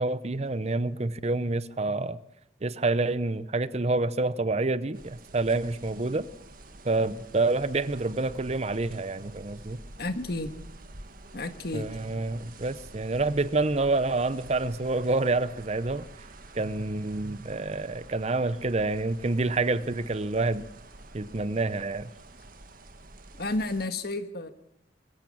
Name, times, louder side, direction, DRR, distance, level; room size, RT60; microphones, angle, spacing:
voice 1, 0.0-2.2 2.6-6.3 6.8-9.8 11.7-16.1 16.5-20.7 21.1-22.1, right 3 dB, 35° right, 16 dB, 0.7 m, -28 dB
sound 1, 4.9-23.9, right 2 dB, 55° right, 1.8 m, -48 dB
voice 2, 10.0-10.5 11.3-11.9 23.4-24.5, left 2 dB, 60° left, 10 dB, 1.7 m, -31 dB
23.5 x 15.0 x 8.7 m, 0.79 s
head